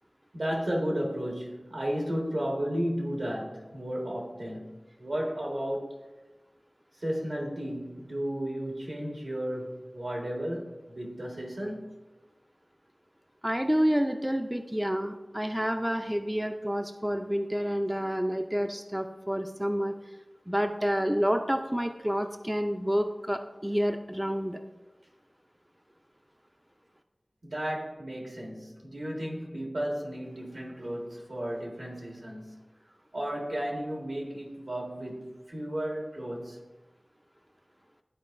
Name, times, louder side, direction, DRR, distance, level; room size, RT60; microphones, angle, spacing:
voice 1, 0.3-5.9 7.0-11.9 27.4-32.6 33.1-36.6, equal, 75° right, 1.6 m, -33 dB
voice 2, 13.4-19.9 20.5-24.6, equal, 10° right, 0.5 m, -29 dB
12.5 x 4.5 x 2.5 m
wide cardioid pair, 55°, 0 cm